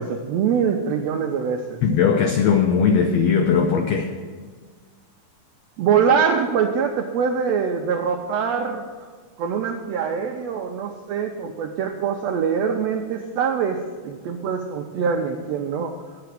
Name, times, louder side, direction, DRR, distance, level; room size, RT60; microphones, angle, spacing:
voice 1, 0.0-1.8 5.8-8.8 9.4-15.9, right 6 dB, 90° right, 3 dB, 1.4 m, -23 dB
voice 2, 1.8-4.1, left 6 dB, 80° left, 5 dB, 1.5 m, -19 dB
9.5 x 6.8 x 7.6 m, 1.5 s
omnidirectional pair, 3.8 m